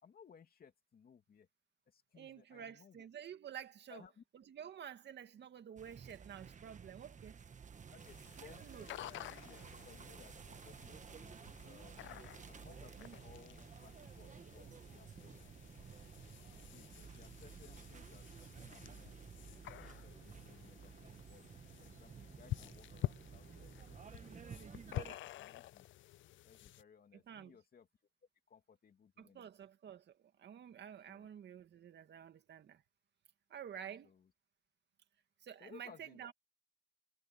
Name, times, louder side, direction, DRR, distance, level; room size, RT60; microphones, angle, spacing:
voice 1, 0.0-1.5 1.9-3.1 3.9-4.2 7.9-11.4 11.6-15.5 16.7-19.2 19.5-25.9 26.4-27.9 28.5-29.5 31.1-31.3 33.8-34.3 35.6-36.3, left 6 dB, 50° left, 2.8 m, -62 dB
voice 2, 2.2-4.0 4.5-7.4 8.6-8.9 13.0-13.2 27.3-27.6 29.2-32.8 33.5-34.1 35.4-36.3, right 9 dB, 60° right, 2.2 m, -50 dB
sound 1, 5.8-25.2, right 6 dB, 40° right, 1.4 m, -53 dB
sound 2, 8.0-26.8, left 14 dB, 75° left, 0.5 m, -49 dB
cardioid pair, 90°, 20 cm